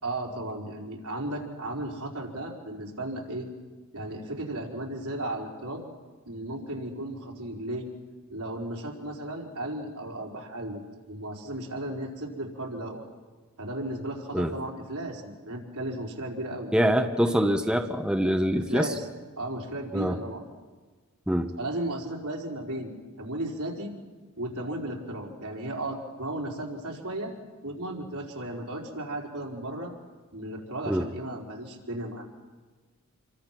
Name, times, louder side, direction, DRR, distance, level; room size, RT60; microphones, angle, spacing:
voice 1, 0.0-3.5 3.9-5.8 6.3-7.9 8.3-10.8 11.1-13.0 13.6-16.7 17.3-17.4 18.5-19.1 19.4-20.4 21.6-23.9 24.4-27.3 27.6-29.9 30.3-32.3, right 1 dB, 90° right, -2 dB, 4.7 m, -35 dB
voice 2, 16.7-18.9 19.9-20.2 21.3-21.6 30.9-31.0, equal, 5° right, 5 dB, 0.9 m, -24 dB
28.0 x 23.5 x 6.0 m, 1.4 s
head